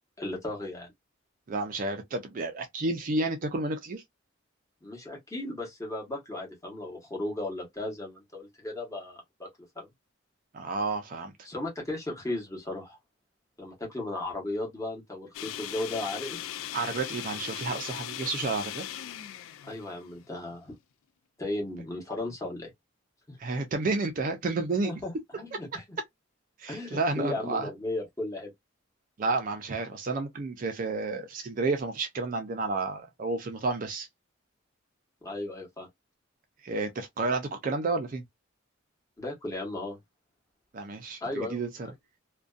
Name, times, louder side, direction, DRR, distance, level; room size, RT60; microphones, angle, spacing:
voice 1, 0.2-0.9 4.8-9.5 9.8-9.9 11.4-13.0 13.6-16.4 19.6-20.7 21.4-22.7 23.3-23.4 24.8-25.8 26.7-28.5 35.2-35.9 39.2-40.0 41.2-41.6, left 2 dB, 15° left, 1.0 m, -35 dB
voice 2, 1.5-4.0 10.5-11.3 16.7-18.9 23.4-24.9 26.6-27.7 29.2-34.1 36.6-38.2 40.7-41.7, right 3 dB, 40° right, 0.4 m, -31 dB
sound 1, 15.3-20.5, left 12 dB, 80° left, 0.3 m, -39 dB
2.5 x 2.2 x 2.3 m
head